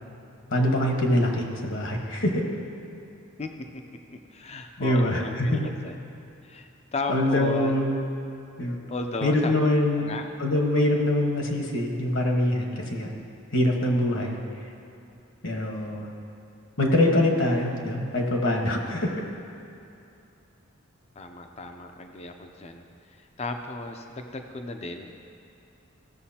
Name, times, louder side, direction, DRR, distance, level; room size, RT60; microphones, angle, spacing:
voice 1, 0.5-2.4 4.8-5.7 7.1-8.0 8.6-8.8 9.2-13.1 13.5-14.4 15.4-16.1 16.8-19.1, left 1 dB, 65° left, 1 dB, 1.3 m, -24 dB
voice 2, 4.1-6.0 6.4-7.7 8.9-9.6 10.0-10.2 21.2-22.8 23.2-25.1, left 3 dB, 30° left, 5 dB, 0.5 m, -35 dB
16.0 x 6.9 x 2.8 m, 2.6 s
head